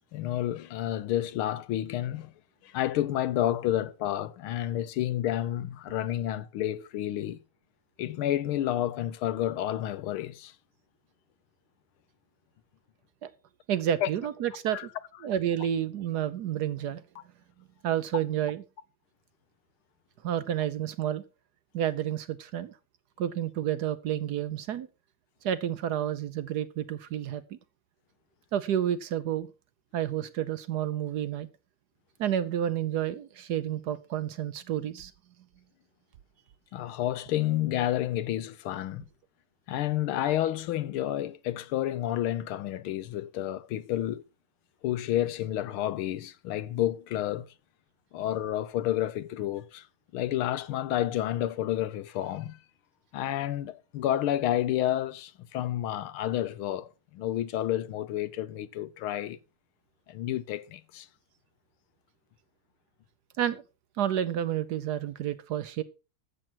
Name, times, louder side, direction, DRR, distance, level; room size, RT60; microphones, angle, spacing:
voice 1, 0.1-2.3 2.6-7.4 8.0-10.5 14.0-14.1 14.7-14.9 36.7-39.1 39.7-44.2 44.8-47.5 48.1-49.9 50.1-52.6 53.1-59.4 60.1-61.1, left 12 dB, 80° left, 1.6 m, -30 dB
voice 2, 13.7-14.9 15.2-17.0 17.8-18.6 20.2-21.2 21.7-22.7 23.2-24.9 25.4-27.6 28.5-29.5 29.9-31.5 32.2-35.1 63.4-63.6 64.0-65.8, right 10 dB, 65° right, 1.0 m, -30 dB
13.5 x 7.4 x 4.5 m
omnidirectional pair, 2.3 m